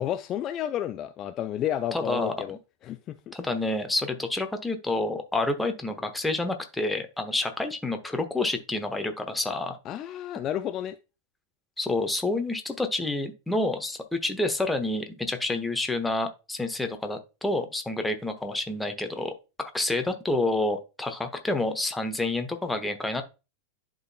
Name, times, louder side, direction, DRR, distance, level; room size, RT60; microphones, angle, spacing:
voice 1, 0.0-2.6 2.8-3.3 9.9-11.0, left 11 dB, 30° left, 9 dB, 0.4 m, -31 dB
voice 2, 1.9-2.6 3.3-9.8 11.8-19.3 19.6-23.2, left 2 dB, 5° left, 6 dB, 0.9 m, -28 dB
11.5 x 3.8 x 2.2 m, 0.29 s
figure-of-eight pair, 90°, 0 cm